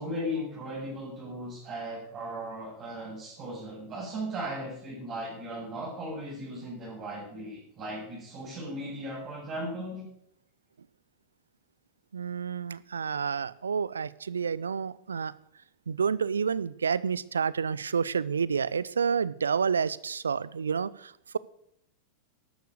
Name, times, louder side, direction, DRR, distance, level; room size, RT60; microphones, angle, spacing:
voice 1, 0.0-10.1, equal, 30° right, -5 dB, 7.7 m, -37 dB
voice 2, 12.1-15.3 15.9-21.4, right 6 dB, 70° right, 19 dB, 0.5 m, -29 dB
13.0 x 11.5 x 6.6 m, 0.73 s
figure-of-eight pair, 90°, 0 cm